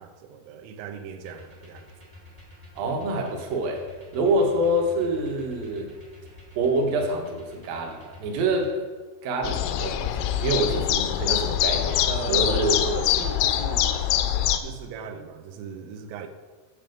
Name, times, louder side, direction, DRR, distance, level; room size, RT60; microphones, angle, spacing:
voice 1, 0.0-1.9 12.1-14.0 14.6-16.3, right 6 dB, 90° right, 7 dB, 3.5 m, -37 dB
sound 1, 1.2-8.7, left 3 dB, 35° right, 0.6 m, -48 dB
voice 2, 2.8-3.8 4.1-6.0 6.6-8.8 9.2-12.8, right 1 dB, 70° right, 1 dB, 2.3 m, -26 dB
sound 2, 9.4-14.6, left 11 dB, 80° left, 2.8 m, -24 dB
10.5 x 7.4 x 5.2 m, 1.4 s
omnidirectional pair, 5.7 m